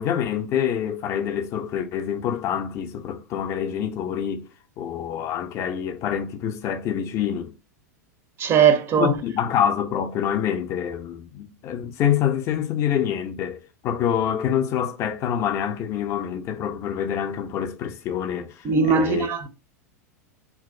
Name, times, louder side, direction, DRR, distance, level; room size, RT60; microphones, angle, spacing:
voice 1, 0.0-4.5 4.8-7.5 9.0-19.3, left 9 dB, 30° left, 0.5 m, -26 dB
voice 2, 8.4-9.1 18.6-19.5, right 6 dB, 25° right, 0.5 m, -19 dB
3.0 x 2.5 x 2.5 m
figure-of-eight pair, 90°, 9 cm